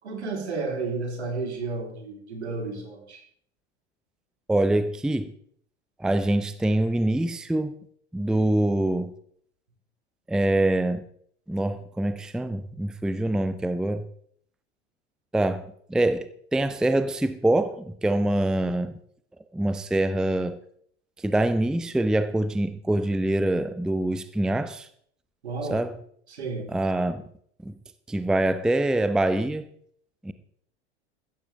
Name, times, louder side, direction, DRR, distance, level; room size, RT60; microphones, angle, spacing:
voice 1, 0.0-3.2 25.4-25.8 26.3-26.7, right 3 dB, 70° right, 1 dB, 4.2 m, -32 dB
voice 2, 4.5-5.3 6.0-7.8 8.1-9.1 10.3-11.0 11.5-14.0 15.3-15.6 15.9-19.0 19.5-20.6 21.2-24.9 25.7-25.9 26.7-27.2 27.6-27.8 28.1-29.7 30.2-30.3, right 1 dB, ahead, 12 dB, 0.6 m, -24 dB
15.0 x 14.0 x 3.5 m, 0.63 s
figure-of-eight pair, 80°, 35 cm